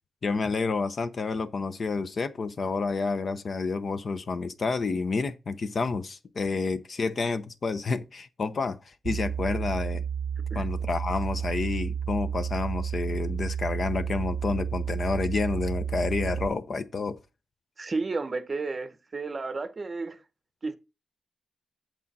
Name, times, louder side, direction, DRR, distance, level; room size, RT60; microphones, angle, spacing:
voice 1, 0.2-10.0 10.5-17.2, left 4 dB, 40° left, 0.7 m, -29 dB
sound 1, 9.0-16.5, right 7 dB, 65° right, 0.4 m, -31 dB
voice 2, 17.8-20.2 20.6-20.8, right 3 dB, 30° right, 0.8 m, -32 dB
8.3 x 7.4 x 4.1 m
wide cardioid pair, 165°, 0 cm